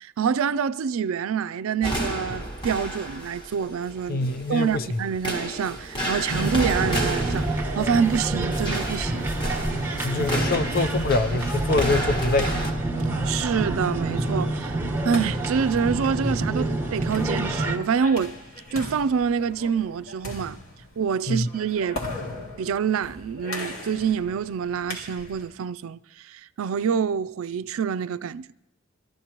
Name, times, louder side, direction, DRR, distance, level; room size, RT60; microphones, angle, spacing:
voice 1, 0.0-9.3 13.2-14.8 15.0-18.4 18.7-20.6 21.0-22.0 22.6-26.0 26.2-28.5, right 6 dB, 75° right, 0.4 m, -26 dB
sound 1, 1.8-12.7, right 1 dB, 20° left, 1.7 m, -32 dB
voice 2, 4.1-4.8 10.0-12.5 21.3-21.5, left 3 dB, 45° left, 0.5 m, -24 dB
sound 2, 6.3-17.8, right 2 dB, 10° right, 1.2 m, -27 dB
sound 3, 10.8-25.6, left 2 dB, 80° left, 2.6 m, -40 dB
22.5 x 14.0 x 3.0 m
head